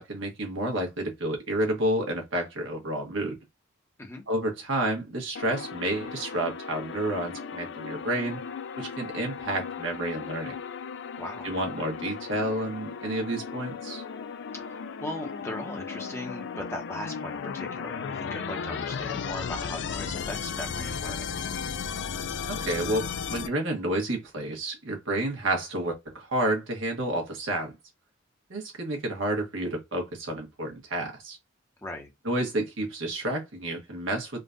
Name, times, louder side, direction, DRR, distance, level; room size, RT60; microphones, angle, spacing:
voice 1, 0.0-3.4 4.3-8.4 8.8-10.5 11.4-14.0 22.5-27.7 28.5-31.4 32.2-34.4, right 1 dB, 75° right, 1.3 m, -30 dB
sound 1, 5.4-23.5, left 6 dB, 60° left, 0.4 m, -35 dB
voice 2, 11.2-11.5 14.6-21.2 31.8-32.1, left 1 dB, 15° left, 0.9 m, -38 dB
3.7 x 2.4 x 2.5 m
head